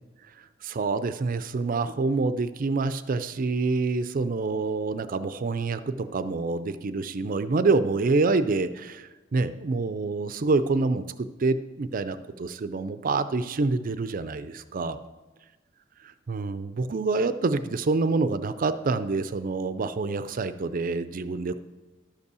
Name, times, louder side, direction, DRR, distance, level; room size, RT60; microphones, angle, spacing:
voice 1, 0.6-15.0 16.3-21.6, right 3 dB, 45° right, 12 dB, 0.5 m, -27 dB
12.0 x 5.4 x 6.8 m, 1.2 s
head